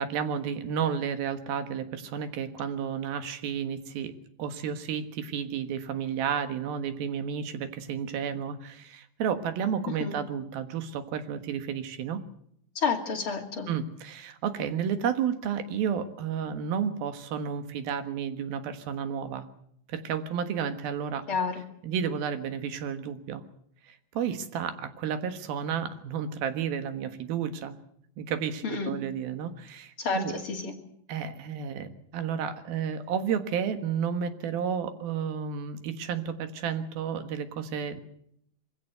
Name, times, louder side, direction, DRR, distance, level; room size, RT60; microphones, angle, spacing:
voice 1, 0.0-4.1 4.4-12.2 13.7-19.5 19.9-21.3 21.8-23.4 23.8-27.7 28.2-30.3 31.1-38.0, right 7 dB, 85° right, 9 dB, 3.4 m, -32 dB
voice 2, 12.7-13.7 21.3-21.6 28.6-28.9 30.0-30.7, left 5 dB, 40° left, 2 dB, 3.1 m, -30 dB
24.0 x 16.0 x 8.0 m, 0.73 s
omnidirectional pair, 4.1 m